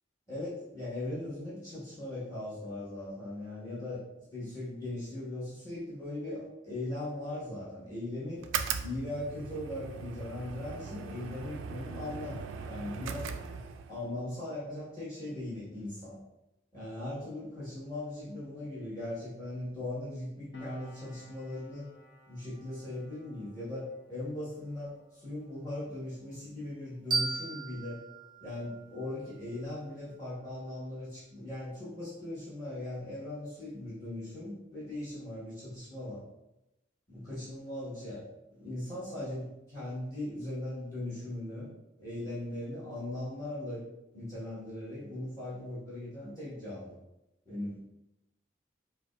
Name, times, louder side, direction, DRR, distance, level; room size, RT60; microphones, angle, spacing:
voice 1, 0.3-4.0 4.3-8.4 8.8-12.4 12.7-13.3 13.9-16.2 16.7-21.9 22.3-28.0 28.4-36.2 37.1-38.2 38.5-41.7 42.0-43.8 44.1-47.0 47.4-47.8, left 1 dB, 20° left, -10 dB, 1.3 m, -39 dB
sound 1, 8.4-14.0, right 6 dB, 90° right, 0.3 m, -39 dB
Piano, 20.5-27.6 27.8-28.1, left 2 dB, 65° left, 0.6 m, -54 dB
sound 2, 27.1-29.9, right 3 dB, 25° right, 0.5 m, -36 dB
5.0 x 2.3 x 2.3 m, 0.92 s
head